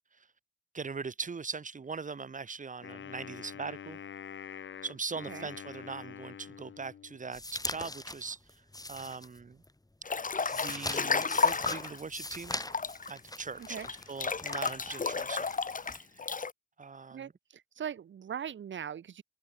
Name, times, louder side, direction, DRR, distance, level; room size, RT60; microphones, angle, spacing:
voice 1, 0.7-4.0 4.8-8.4 8.9-9.6 10.5-12.6 13.1-13.8 14.1-15.4 16.0-16.1 16.8-17.3, right 5 dB, 40° right, 0.9 m, -40 dB
Wind instrument woodwind instrument, 2.8-7.3, left 8 dB, 80° left, 3.3 m, -46 dB
sound 1, 7.3-9.7 10.0-16.0, left 2 dB, 20° left, 3.1 m, -42 dB
Breathing / Bathtub (filling or washing) / Splash splatter, 10.1-12.0 12.5-16.5, left 4 dB, 45° left, 1.3 m, -32 dB
voice 2, 17.1-19.2, right 8 dB, 80° right, 1.6 m, -40 dB
supercardioid pair, 45°, 19 cm